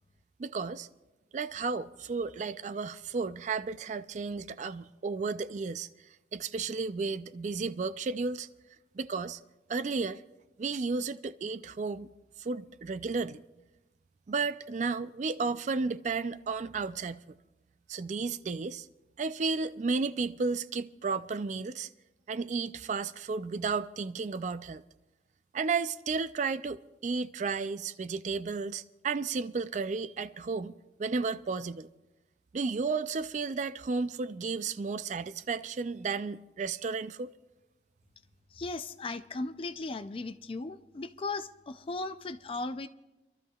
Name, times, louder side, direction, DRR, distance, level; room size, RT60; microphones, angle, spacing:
voice 1, 0.4-0.9 1.3-5.9 6.3-8.5 9.0-9.4 9.7-10.2 10.6-12.1 12.4-13.4 14.3-17.2 17.9-18.9 19.2-21.9 22.3-24.8 25.5-30.7 31.0-31.9 32.5-37.3, right 4 dB, 40° right, 0.4 m, -33 dB
voice 2, 38.5-42.9, left 3 dB, 30° left, 0.4 m, -37 dB
29.5 x 12.5 x 2.3 m
head